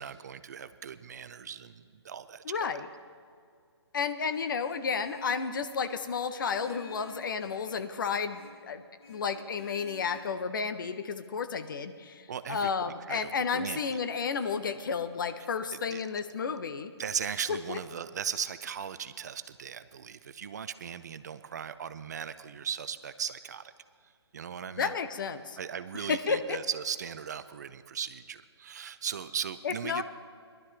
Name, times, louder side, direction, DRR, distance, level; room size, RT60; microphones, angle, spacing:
voice 1, 0.0-2.8 12.3-14.0 15.7-16.0 17.0-23.7 24.3-24.9 25.6-30.0, right 8 dB, 40° right, 13 dB, 0.5 m, -38 dB
voice 2, 2.4-2.9 3.9-8.8 9.1-16.9 17.5-17.8 24.8-25.6 26.1-26.6 29.6-30.0, left 5 dB, 45° left, 10 dB, 0.8 m, -32 dB
Vehicle horn car horn honking, 4.3-5.6 6.4-7.9 8.3-8.6 9.0-10.2, left 4 dB, 65° left, 3.8 m, -51 dB
19.5 x 12.0 x 3.8 m, 2.1 s
figure-of-eight pair, 135°, 14 cm